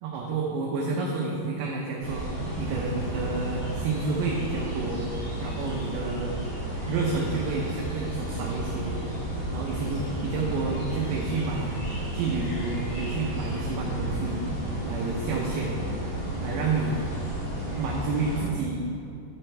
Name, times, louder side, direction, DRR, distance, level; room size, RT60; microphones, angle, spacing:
voice 1, 0.0-5.1 5.4-6.4 6.9-9.0 9.5-11.8 12.1-14.4 14.8-15.8 16.4-17.0 17.8-18.8, right 4 dB, 75° right, -1 dB, 2.4 m, -30 dB
sound 1, 2.0-18.5, right 1 dB, 40° left, 1.2 m, -32 dB
12.5 x 9.0 x 3.3 m, 2.6 s
omnidirectional pair, 5.0 m